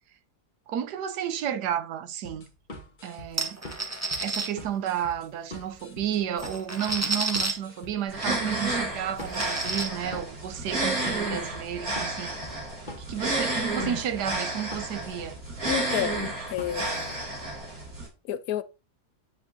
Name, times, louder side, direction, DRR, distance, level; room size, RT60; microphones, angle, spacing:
voice 1, 0.7-2.5 3.0-3.6 4.2-12.4 13.1-15.4, right 9 dB, 85° right, 1.3 m, -32 dB
sound 1, 2.2-17.0, left 1 dB, 30° left, 1.7 m, -44 dB
sound 2, 3.4-4.5 5.8-5.9 6.2-7.5 8.2-8.3 8.7-8.8 9.2-9.9, right 2 dB, 10° right, 1.0 m, -30 dB
sound 3, 8.1-18.1, right 2 dB, 65° right, 3.0 m, -31 dB
voice 2, 15.7-17.3 18.3-18.6, left 11 dB, 70° left, 1.0 m, -31 dB
9.6 x 8.3 x 2.8 m
omnidirectional pair, 1.7 m